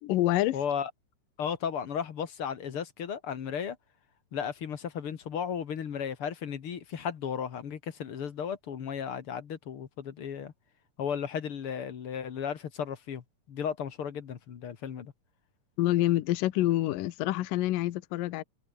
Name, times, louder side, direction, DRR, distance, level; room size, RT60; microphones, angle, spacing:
voice 1, 0.0-0.6 15.8-18.4, left 16 dB, 75° left, 2.6 m, -27 dB
voice 2, 0.5-0.9 1.4-3.8 4.3-10.5 11.0-15.1, left 7 dB, 50° left, 2.0 m, -35 dB
omnidirectional pair, 4.1 m